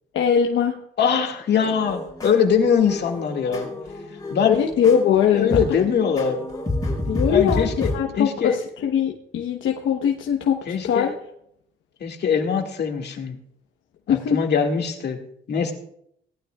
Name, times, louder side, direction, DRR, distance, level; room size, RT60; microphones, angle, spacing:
voice 1, 0.1-0.8 4.4-5.8 7.1-11.1 14.1-14.4, left 8 dB, 75° left, 2 dB, 1.1 m, -21 dB
voice 2, 1.0-3.7 4.3-4.6 5.3-6.4 7.2-8.6 10.7-11.1 12.0-13.4 14.1-15.2 15.5-15.7, left 7 dB, 60° left, 3 dB, 2.1 m, -22 dB
sound 1, 1.6-8.0, left 2 dB, 20° left, 5.8 m, -29 dB
18.5 x 12.0 x 2.4 m, 0.72 s
cardioid pair, 90°, 20 cm